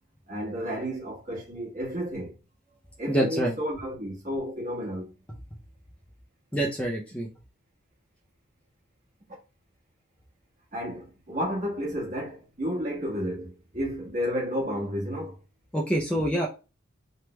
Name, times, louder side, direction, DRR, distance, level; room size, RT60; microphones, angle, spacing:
voice 1, 0.3-2.3 3.0-5.1 10.7-15.4, equal, 35° right, 1.2 m, -32 dB
voice 2, 3.1-3.5 6.5-7.3 15.7-16.5, right 1 dB, 5° left, 0.4 m, -26 dB
3.3 x 2.1 x 2.9 m
head